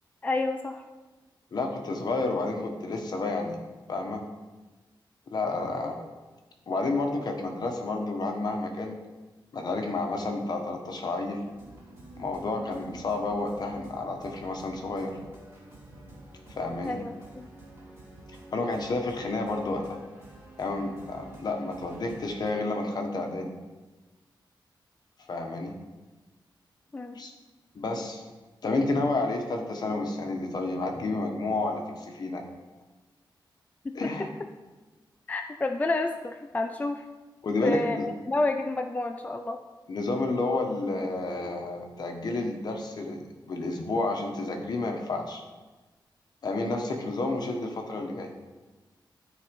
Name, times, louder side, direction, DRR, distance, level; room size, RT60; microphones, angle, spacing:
voice 1, 0.2-0.8 16.8-17.5 26.9-27.2 33.8-34.0 35.3-37.1 37.6-39.6, left 2 dB, 20° left, 5 dB, 0.4 m, -30 dB
voice 2, 1.5-3.6 3.9-4.2 5.3-6.0 6.7-9.0 9.5-11.4 12.2-15.1 16.6-17.0 18.5-20.0 20.6-23.5 25.3-25.7 27.1-27.3 27.7-28.2 28.6-32.4 33.9-34.3 37.4-38.1 39.9-45.4 46.4-48.3, left 2 dB, 55° left, 3 dB, 1.3 m, -30 dB
sound 1, 11.4-22.5, right 2 dB, 30° right, 3.2 m, -49 dB
12.5 x 4.3 x 5.3 m, 1.2 s
wide cardioid pair, 160°, 8 cm